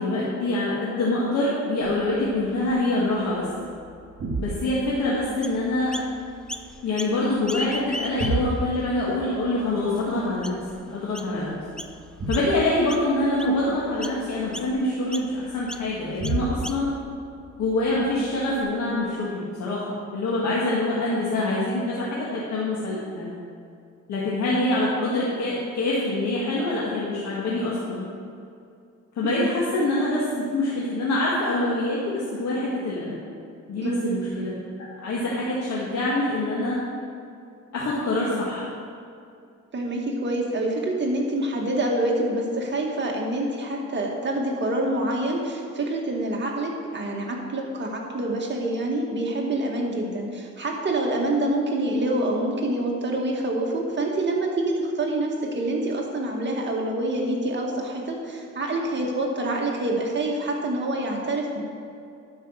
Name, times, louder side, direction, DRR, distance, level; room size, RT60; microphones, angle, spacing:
voice 1, 0.0-3.5 4.4-5.9 6.8-10.6 10.9-11.6 12.3-17.0 17.6-23.3 24.1-28.1 29.2-33.2 33.7-34.5 34.8-36.8 37.7-38.7, left 2 dB, 65° left, -6 dB, 2.0 m, -25 dB
sound 1, 1.8-18.6, right 3 dB, 55° right, 2.8 m, -36 dB
Chirp tweet, 5.4-6.1 6.5-7.2 7.4-8.6 9.2-9.3 10.0-10.1 10.4-10.7 11.1-11.3 11.8-12.0 12.3-12.6 12.9-13.6 14.0-14.2 14.5-14.7 15.1-15.3 15.7-15.9 16.2-17.0, left 1 dB, 5° left, 0.5 m, -36 dB
voice 2, 29.2-29.6 33.8-34.2 39.7-61.6, right 1 dB, 35° right, -1 dB, 2.0 m, -26 dB
11.5 x 5.5 x 6.5 m, 2.5 s
cardioid pair, 90°, 30 cm